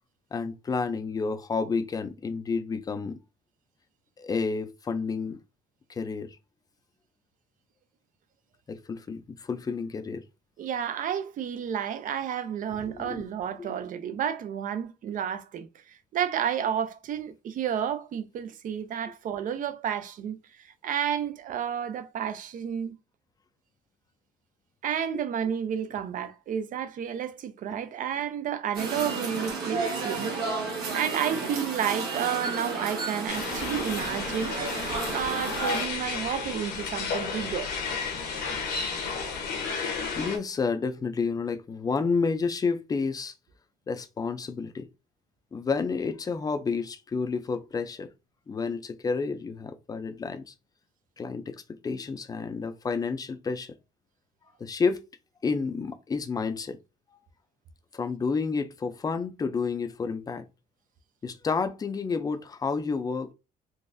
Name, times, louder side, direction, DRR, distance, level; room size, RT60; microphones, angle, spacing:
voice 1, 0.3-3.2 4.2-5.4 5.9-6.4 8.7-10.2 12.8-13.2 13.6-13.8 25.1-25.2 40.2-43.3 43.9-44.9 45.5-48.1 48.5-50.5 51.2-53.7 54.6-55.0 55.4-56.8 57.9-60.4 61.2-63.3, left 4 dB, 20° left, 0.4 m, -30 dB
voice 2, 10.6-22.9 24.8-34.6 35.1-37.7, right 8 dB, 50° right, 0.5 m, -31 dB
sound 1, 28.7-35.9, right 3 dB, 75° right, 1.2 m, -32 dB
sound 2, 33.3-40.4, left 5 dB, 70° left, 0.9 m, -33 dB
3.9 x 2.5 x 2.5 m
cardioid pair, 110°, 17 cm